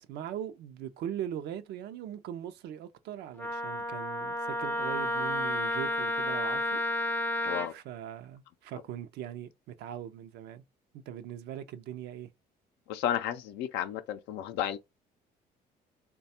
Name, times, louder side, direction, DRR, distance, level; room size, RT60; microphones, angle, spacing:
voice 1, 0.0-6.8 7.7-10.6 10.9-12.3, right 10 dB, 75° right, 0.5 m, -40 dB
Wind instrument woodwind instrument, 3.4-7.7, left 1 dB, 10° left, 0.4 m, -31 dB
voice 2, 7.4-7.7 12.9-14.8, left 10 dB, 90° left, 0.5 m, -32 dB
3.3 x 2.2 x 4.1 m
cardioid pair, 110°, 17 cm